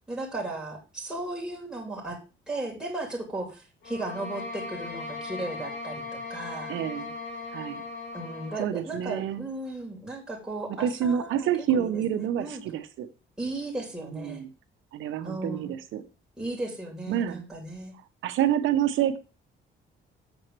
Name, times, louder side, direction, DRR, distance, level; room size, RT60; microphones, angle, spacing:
voice 1, 0.1-2.2 2.5-6.8 8.1-12.6 13.4-14.4 15.2-15.7 16.4-17.9, right 2 dB, 5° right, -2 dB, 3.1 m, -36 dB
sound 1, 3.8-8.7, left 3 dB, 65° left, 2.2 m, -38 dB
voice 2, 6.7-7.1 7.5-7.8 8.6-9.4 10.8-13.1 14.0-14.5 14.9-16.0 17.1-17.4 18.2-19.2, right 10 dB, 85° right, 10 dB, 0.9 m, -28 dB
7.1 x 4.4 x 6.6 m, 0.32 s
cardioid pair, 90°, 20 cm